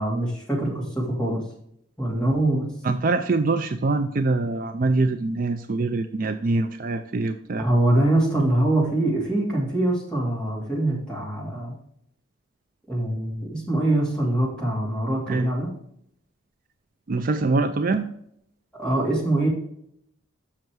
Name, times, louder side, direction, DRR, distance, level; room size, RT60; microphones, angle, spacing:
voice 1, 0.0-1.4 2.0-2.7 7.6-11.7 12.9-15.7 18.8-19.5, right 1 dB, 5° left, -5 dB, 2.5 m, -23 dB
voice 2, 2.8-7.7 15.3-15.5 17.1-18.1, right 3 dB, 40° right, 8 dB, 0.4 m, -24 dB
6.6 x 5.7 x 4.6 m, 0.71 s
head